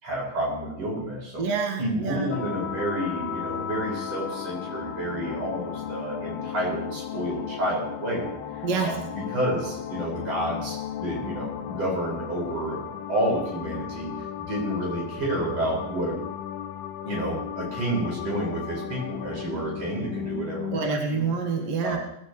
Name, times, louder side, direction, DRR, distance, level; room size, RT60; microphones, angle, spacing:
voice 1, 0.0-1.4 1.8-8.3 8.8-14.1 14.4-16.2 17.0-20.8 21.1-21.2 21.8-22.0, right 1 dB, 30° right, -4 dB, 6.5 m, -30 dB
voice 2, 1.4-2.3 8.6-9.0 20.7-22.0, right 5 dB, 85° right, 1 dB, 1.3 m, -27 dB
sound 1, 2.3-20.8, left 9 dB, 85° left, 2.3 m, -35 dB
21.0 x 16.0 x 3.2 m, 0.74 s
omnidirectional pair, 5.7 m